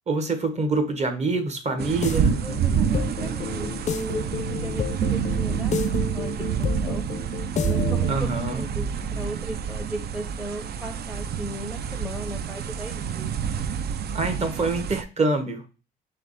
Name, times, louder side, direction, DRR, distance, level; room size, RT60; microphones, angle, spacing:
voice 1, 0.1-2.4 8.1-8.7 14.1-15.6, right 3 dB, 35° right, 7 dB, 1.1 m, -25 dB
sound 1, 1.7-8.2, left 7 dB, 35° left, 0.4 m, -31 dB
sound 2, 1.8-15.0, right 8 dB, 55° right, 0.4 m, -28 dB
voice 2, 2.4-6.3 6.6-7.1 7.6-13.3, right 1 dB, 5° right, 5 dB, 0.6 m, -37 dB
3.4 x 3.3 x 3.9 m, 0.33 s
cardioid pair, 90°, 20 cm